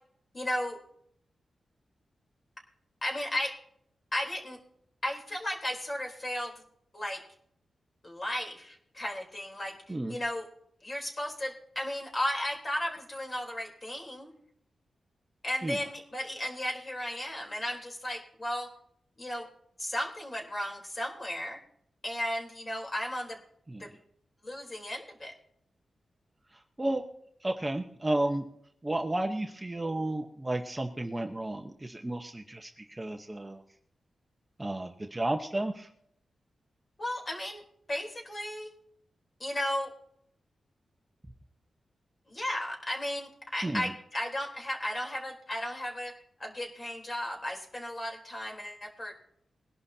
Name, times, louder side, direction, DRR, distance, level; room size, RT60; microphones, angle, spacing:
voice 1, 0.3-0.8 3.0-3.5 4.1-4.6 5.0-6.5 6.9-7.2 8.0-10.5 10.8-14.3 15.4-18.7 19.2-19.5 19.8-21.6 22.0-23.4 23.8-23.9 24.4-25.3 37.0-37.6 37.9-38.7 39.4-39.9 42.3-49.1, left 1 dB, 30° left, 0 dB, 3.7 m, -35 dB
voice 2, 27.4-28.4 28.8-33.6 34.6-35.9 43.6-43.9, right 1 dB, 15° right, 3 dB, 1.0 m, -32 dB
21.5 x 11.5 x 2.8 m, 0.68 s
wide cardioid pair, 120°, 0 cm